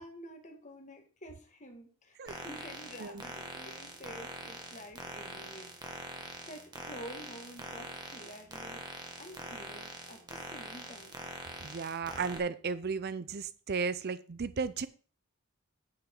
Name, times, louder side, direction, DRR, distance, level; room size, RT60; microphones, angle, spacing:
voice 1, 0.0-6.2 6.5-11.2, equal, 35° left, 2.1 m, -49 dB
sound 1, 2.3-12.4, right 2 dB, 20° right, 1.8 m, -44 dB
voice 2, 11.6-14.9, right 5 dB, 45° right, 0.5 m, -34 dB
9.9 x 8.9 x 3.9 m
head